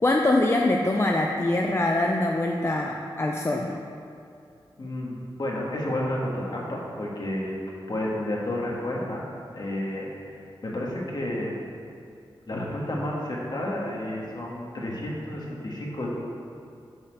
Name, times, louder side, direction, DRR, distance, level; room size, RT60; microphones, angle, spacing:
voice 1, 0.0-3.7, left 2 dB, 30° left, 0 dB, 0.5 m, -23 dB
voice 2, 4.8-7.6 7.9-9.2 9.5-10.1 10.6-11.6 12.5-16.1, left 1 dB, 50° left, -3 dB, 1.7 m, -31 dB
7.0 x 4.4 x 6.6 m, 2.4 s
wide cardioid pair, 75°, 9 cm